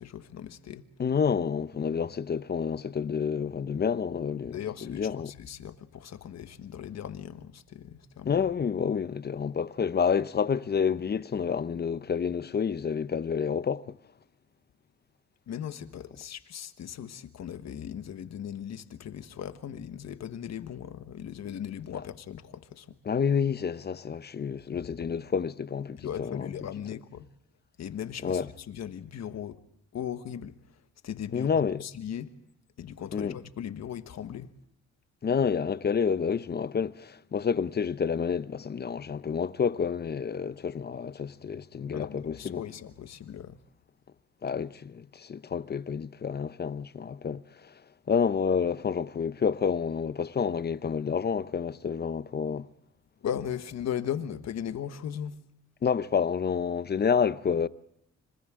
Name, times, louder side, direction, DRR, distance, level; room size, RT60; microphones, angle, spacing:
voice 1, 0.0-0.9 4.5-8.5 15.5-22.9 24.7-25.1 26.0-27.3 27.8-29.6 29.9-30.6 31.0-32.3 32.8-34.5 41.9-43.6 53.2-55.4, left 9 dB, 60° left, 1.4 m, -38 dB
voice 2, 1.0-4.6 4.8-5.3 8.2-13.9 23.0-26.5 28.2-28.5 31.3-31.8 33.1-33.4 35.2-42.6 44.4-47.7 48.1-52.7 55.8-57.7, left 6 dB, 35° left, 0.7 m, -29 dB
28.0 x 26.0 x 3.7 m
cardioid pair, 90°, 30 cm